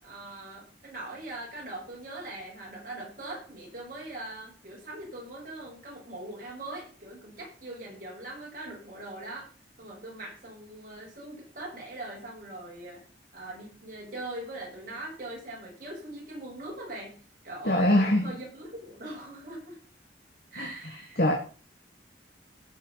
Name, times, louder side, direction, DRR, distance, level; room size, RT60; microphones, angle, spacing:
voice 1, 0.0-9.5 9.8-13.0 13.3-17.1 17.4-19.8 20.5-21.2, right 1 dB, 50° right, 6.6 m, -41 dB
voice 2, 17.7-18.3 20.6-20.7 21.2-21.3, left 1 dB, 60° left, 1.7 m, -22 dB
16.0 x 5.6 x 5.6 m
head